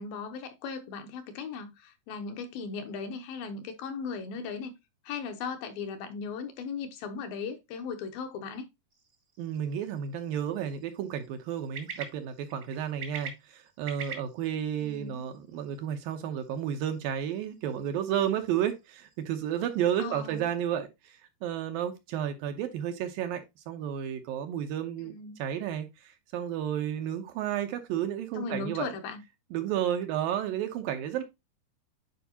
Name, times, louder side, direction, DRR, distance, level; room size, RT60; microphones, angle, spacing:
voice 1, 0.0-4.7 5.1-8.7 14.8-15.3 20.0-20.5 25.0-25.4 28.4-29.2, left 5 dB, 75° left, 2.6 m, -37 dB
sound 1, 8.9-20.6, right 6 dB, 40° right, 1.1 m, -48 dB
voice 2, 9.4-25.1 25.4-28.9 29.5-31.2, right 10 dB, 75° right, 2.4 m, -32 dB
9.5 x 4.6 x 2.8 m
omnidirectional pair, 4.4 m